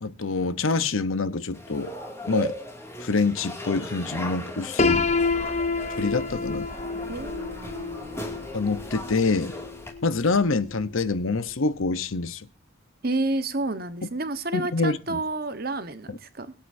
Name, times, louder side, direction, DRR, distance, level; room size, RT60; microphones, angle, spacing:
voice 1, 0.0-1.9 2.3-2.5 3.0-5.1 6.0-6.7 8.5-9.6 10.0-12.5 14.0-14.1 14.5-15.2 16.1-16.2, left 3 dB, 85° left, 0.9 m, -26 dB
sound 1, 1.5-9.9, equal, 15° left, 2.4 m, -37 dB
Piano, 4.8-10.6, left 4 dB, 35° left, 0.7 m, -28 dB
voice 2, 7.1-8.2 13.0-16.5, right 2 dB, 45° right, 1.2 m, -30 dB
23.5 x 8.1 x 2.7 m
head